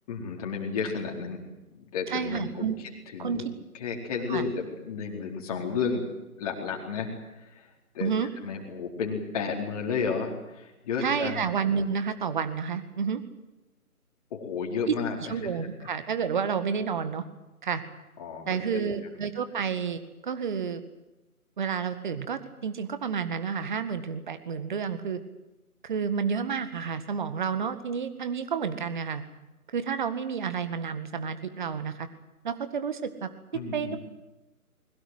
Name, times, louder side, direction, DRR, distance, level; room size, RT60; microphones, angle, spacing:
voice 1, 0.1-1.4 1.9-2.7 3.1-3.5 3.8-6.0 6.4-7.1 7.4-7.7 7.9-8.1 8.4-11.5 14.3-15.5 18.2-18.9 33.5-34.0, left 5 dB, 25° left, 1 dB, 4.4 m, -32 dB
voice 2, 2.1-2.8 3.2-3.5 4.3-4.5 8.0-8.3 11.0-13.2 14.9-15.0 15.3-17.2 17.6-17.8 18.5-20.8 21.6-25.2 25.8-29.3 29.7-32.1 32.4-33.3 33.7-34.0, right 6 dB, 30° right, 11 dB, 1.9 m, -30 dB
22.0 x 21.5 x 8.0 m, 1.0 s
figure-of-eight pair, 150°, 44 cm